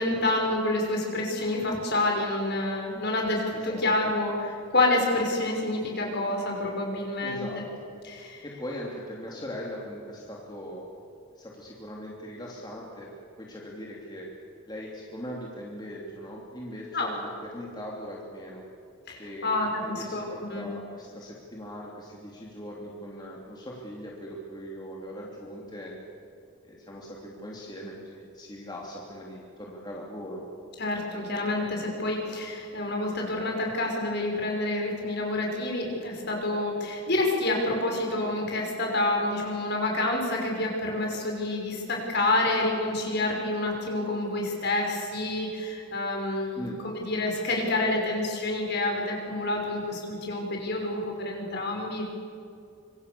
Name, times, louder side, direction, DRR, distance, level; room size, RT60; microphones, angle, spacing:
voice 1, 0.0-7.4 8.0-8.5 16.9-17.1 19.1-20.2 20.5-20.7 30.8-52.1, left 2 dB, 50° left, 1 dB, 5.9 m, -28 dB
voice 2, 3.5-3.9 7.2-7.6 8.4-10.8 11.4-13.1 13.4-14.3 14.7-18.6 19.2-25.9 26.6-30.4 46.5-46.8, equal, 20° left, -3 dB, 3.0 m, -40 dB
25.5 x 25.0 x 6.9 m, 2.5 s
head